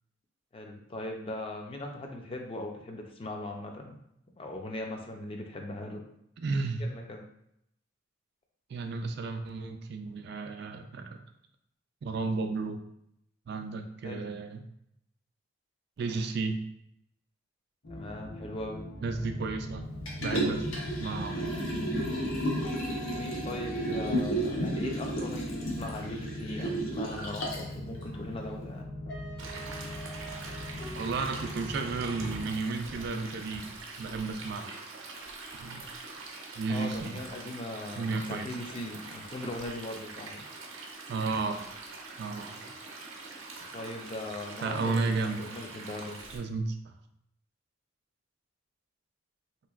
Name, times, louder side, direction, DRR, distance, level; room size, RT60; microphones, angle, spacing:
voice 1, 0.5-4.0 4.4-6.0 6.8-7.3 14.0-14.4 17.9-18.8 23.1-29.0 36.7-40.4 43.7-46.2, left 1 dB, 30° left, 2 dB, 0.4 m, -39 dB
voice 2, 6.4-6.9 8.7-11.2 12.0-12.8 13.5-14.6 16.0-16.6 19.0-19.9 20.2-20.6 21.0-21.5 31.0-34.7 35.5-35.9 36.6-37.2 38.0-38.5 41.1-41.6 42.2-42.6 44.6-45.4 46.3-46.7, right 4 dB, 55° right, 6 dB, 0.3 m, -33 dB
sound 1, 17.8-32.5, left 1 dB, 45° left, 0.9 m, -41 dB
Liquid, 20.1-27.7 28.2-28.3, right 1 dB, 85° left, 0.7 m, -32 dB
Stream, 29.4-46.4, right 3 dB, 90° right, 0.6 m, -44 dB
3.3 x 2.9 x 2.4 m, 0.76 s
head